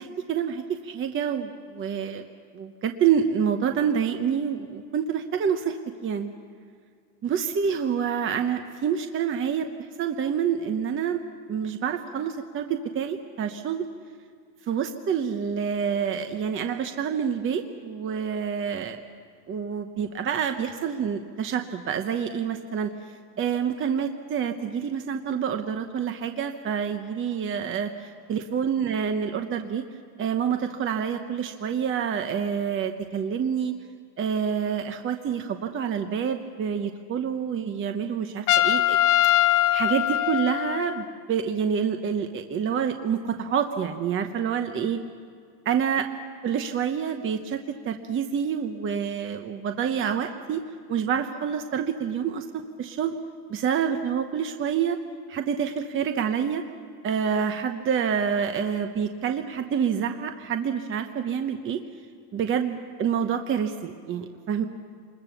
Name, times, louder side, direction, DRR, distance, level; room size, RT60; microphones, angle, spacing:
voice 1, 0.0-2.2 2.5-5.8 6.0-6.3 7.2-9.7 10.0-11.2 11.5-13.8 14.7-19.0 19.5-22.9 23.4-29.8 30.2-33.7 34.2-39.0 39.7-45.0 45.7-46.1 46.4-50.6 50.9-53.1 53.5-55.0 55.3-56.6 57.0-61.8 62.3-64.6, right 7 dB, 25° right, 6 dB, 0.9 m, -27 dB
Trumpet, 38.5-41.2, left 13 dB, 40° left, 0.7 m, -22 dB
26.0 x 21.0 x 7.1 m, 2.2 s
cardioid pair, 155°, 46 cm